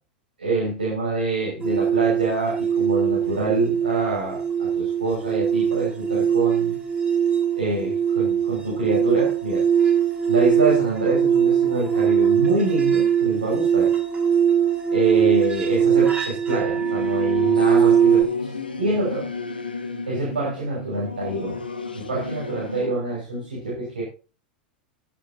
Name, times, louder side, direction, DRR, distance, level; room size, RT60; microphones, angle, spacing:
voice 1, 0.4-6.8 7.6-9.6 10.3-13.9 14.9-19.2 20.1-21.6 21.9-24.0, right 2 dB, 70° right, -5 dB, 6.4 m, -26 dB
sound 1, 1.6-18.2, right 8 dB, 20° right, 5.6 m, -21 dB
Singing / Musical instrument, 16.7-22.9, left 4 dB, 80° left, 1.6 m, -33 dB
16.0 x 10.0 x 2.9 m, 0.35 s
figure-of-eight pair, 90°, 5 cm